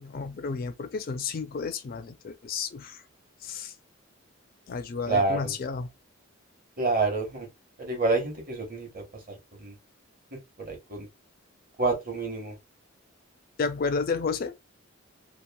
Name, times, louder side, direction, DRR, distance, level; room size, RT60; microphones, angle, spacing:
voice 1, 0.0-3.0 3.4-3.7 4.7-5.9 13.6-14.5, left 5 dB, 45° left, 0.4 m, -31 dB
voice 2, 5.1-5.5 6.8-7.5 7.8-9.0 9.6-9.7 10.6-11.1 11.8-12.5, right 3 dB, 45° right, 1.0 m, -28 dB
2.9 x 2.5 x 2.2 m
head